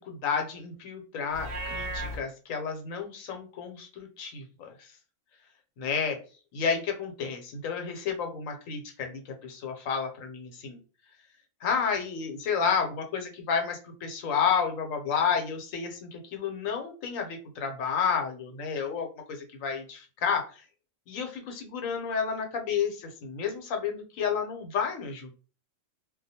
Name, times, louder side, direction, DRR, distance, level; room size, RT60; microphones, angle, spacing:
voice 1, 0.1-4.9 5.8-6.2 6.5-10.8 11.6-20.6 21.1-25.3, left 6 dB, 85° left, 4 dB, 1.1 m, -31 dB
Livestock farm animals working animals, 1.3-2.2, right 1 dB, 55° right, 0.8 m, -34 dB
2.3 x 2.1 x 2.7 m, 0.35 s
omnidirectional pair, 1.3 m